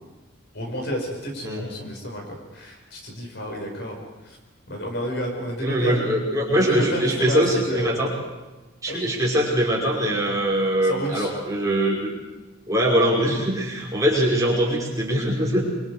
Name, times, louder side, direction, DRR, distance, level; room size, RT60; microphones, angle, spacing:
voice 1, 0.5-4.4 4.7-6.0 6.5-8.0 8.9-9.1 10.8-11.3, equal, 60° left, 2 dB, 5.6 m, -30 dB
voice 2, 5.6-8.1 8.8-12.0 12.7-15.7, right 1 dB, 15° right, -4 dB, 5.7 m, -22 dB
26.5 x 24.5 x 5.0 m, 1.1 s
head